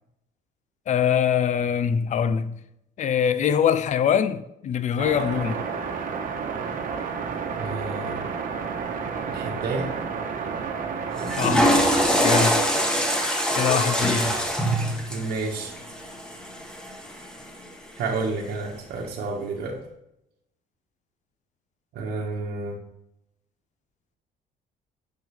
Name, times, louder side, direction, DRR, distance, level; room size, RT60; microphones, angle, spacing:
voice 1, 0.9-2.6 3.0-5.6 11.4-11.7 12.2-12.7 13.5-14.4, left 8 dB, 45° left, 0.6 m, -23 dB
sound 1, 5.0-12.0, right 5 dB, 55° right, 1.2 m, -31 dB
voice 2, 7.6-8.3 9.3-9.9 14.2-14.4 15.1-15.7 18.0-19.8 21.9-22.8, right 3 dB, 70° right, 1.3 m, -30 dB
Water / Toilet flush, 11.1-17.4, equal, 5° left, 1.3 m, -24 dB
9.2 x 5.5 x 3.5 m
cardioid pair, 110°, 17 cm